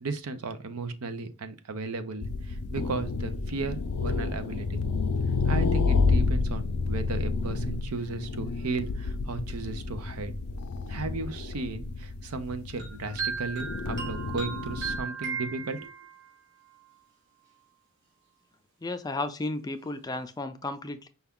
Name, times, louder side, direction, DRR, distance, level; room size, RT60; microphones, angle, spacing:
voice 1, 0.0-4.8 5.5-10.3 10.9-15.9, right 3 dB, 80° right, 0.6 m, -35 dB
sound 1, 2.2-15.0, left 4 dB, 90° left, 0.5 m, -29 dB
sound 2, 12.8-16.3, right 5 dB, 55° right, 2.1 m, -35 dB
voice 2, 18.8-21.1, left 2 dB, 20° left, 0.4 m, -33 dB
5.6 x 2.3 x 3.5 m
head